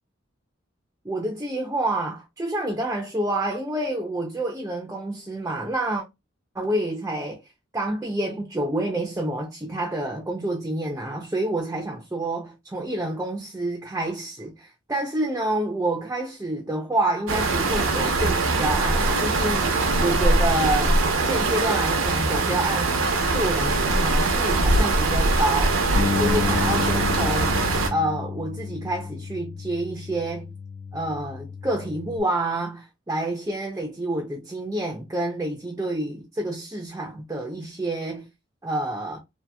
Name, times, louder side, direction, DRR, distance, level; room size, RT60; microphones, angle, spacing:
voice 1, 1.0-6.0 6.5-7.4 7.7-23.0 23.3-25.8 26.1-30.5 30.9-38.3 38.6-39.2, right 1 dB, 15° right, 0.4 m, -28 dB
sound 1, 17.3-27.9, right 2 dB, 80° right, 0.7 m, -22 dB
Bass guitar, 26.0-32.2, left 5 dB, 70° left, 0.4 m, -31 dB
2.7 x 2.4 x 2.2 m
head